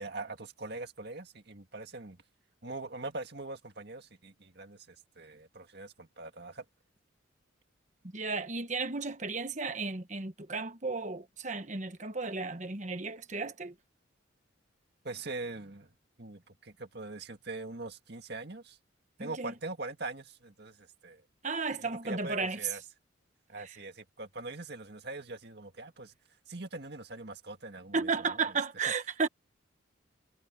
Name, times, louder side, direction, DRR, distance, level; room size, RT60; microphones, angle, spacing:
voice 1, 0.0-2.2 2.6-6.6 15.0-15.9 16.2-18.8 19.2-21.2 21.8-22.8 23.5-26.1 26.5-28.6, right 2 dB, 55° right, 2.0 m, -42 dB
voice 2, 8.1-13.7 19.2-19.5 21.4-22.6 27.9-29.3, right 4 dB, 35° right, 1.2 m, -34 dB
head